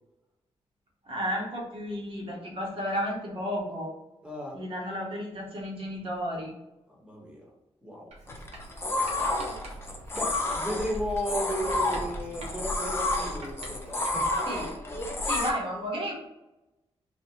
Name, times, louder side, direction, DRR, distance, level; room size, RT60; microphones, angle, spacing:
voice 1, 1.1-3.9 4.5-6.5 14.5-14.7 15.2-16.1, equal, 55° right, -2 dB, 1.3 m, -32 dB
voice 2, 4.2-4.6 6.9-7.5 7.8-8.1 8.9-9.2 10.1-14.2, equal, 10° right, -2 dB, 1.2 m, -34 dB
Writing, 8.1-14.5, right 1 dB, 85° right, 1.0 m, -46 dB
sound 1, 8.3-15.5, left 2 dB, 20° left, 0.7 m, -30 dB
3.4 x 2.4 x 4.3 m, 0.98 s
wide cardioid pair, 135°, 11 cm